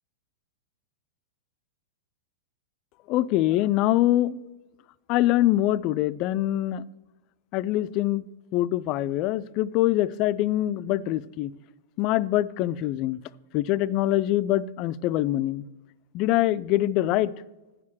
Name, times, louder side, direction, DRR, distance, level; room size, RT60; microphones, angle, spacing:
voice 1, 3.1-4.5 5.1-6.8 7.5-8.2 8.5-11.5 12.0-13.2 13.5-15.7 16.1-17.3, left 14 dB, 45° left, 0.3 m, -24 dB
8.0 x 7.4 x 6.1 m
hypercardioid pair, 105°, 0 cm